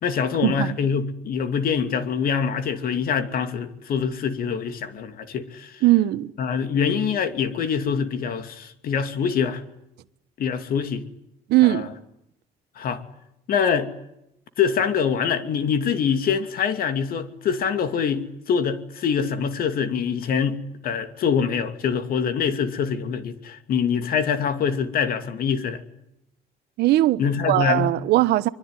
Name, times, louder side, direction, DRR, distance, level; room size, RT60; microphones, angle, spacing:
voice 1, 0.0-5.8 6.4-9.6 10.4-11.0 11.6-11.9 12.8-13.0 13.5-13.9 14.6-25.8 27.2-27.9, left 6 dB, 60° left, 2.7 m, -24 dB
voice 2, 5.8-6.3 11.5-11.9 26.8-28.5, right 16 dB, 75° right, 1.2 m, -19 dB
25.0 x 23.5 x 9.9 m
cardioid pair, 110°, 17 cm